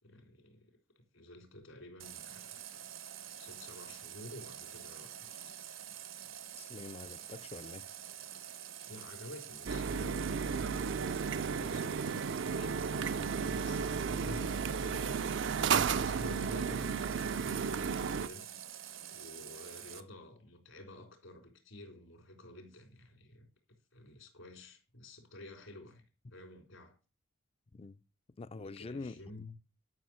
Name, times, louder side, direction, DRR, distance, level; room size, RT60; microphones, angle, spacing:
voice 1, 0.0-0.8 1.1-2.6 3.4-5.6 8.9-15.2 16.0-18.5 19.1-26.0 26.3-26.9 28.5-29.5, left 1 dB, 80° left, 4.0 m, -51 dB
Water tap faucet, 2.0-20.0, right 10 dB, 90° right, 1.4 m, -47 dB
voice 2, 6.6-7.9 27.7-28.0 28.4-29.2, left 3 dB, 30° left, 0.4 m, -45 dB
sound 1, 9.7-18.3, right 6 dB, 65° right, 0.5 m, -33 dB
11.5 x 6.4 x 6.2 m
head